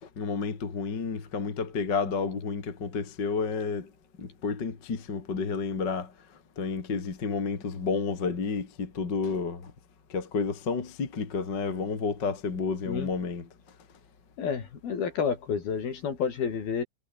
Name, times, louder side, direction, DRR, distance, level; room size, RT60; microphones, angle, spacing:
voice 1, 0.2-3.9 4.2-6.1 6.6-9.7 10.1-13.5, left 5 dB, 30° left, 2.3 m, -30 dB
voice 2, 14.4-16.8, left 6 dB, 50° left, 5.1 m, -30 dB
omnidirectional pair, 6.0 m